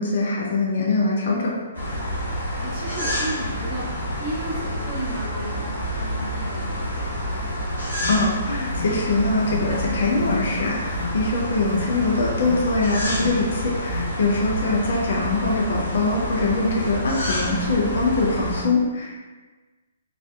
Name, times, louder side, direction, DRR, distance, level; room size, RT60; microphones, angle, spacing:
voice 1, 0.0-1.5 8.1-19.2, left 2 dB, 50° left, -3 dB, 0.4 m, -23 dB
sound 1, 1.7-18.6, equal, 70° left, 0.9 m, -28 dB
voice 2, 2.2-7.1, right 1 dB, 25° right, -10 dB, 1.0 m, -34 dB
Alarm, 7.3-14.0, left 3 dB, 50° right, 0.9 m, -36 dB
2.6 x 2.1 x 2.3 m, 1.3 s
figure-of-eight pair, 125°, 0 cm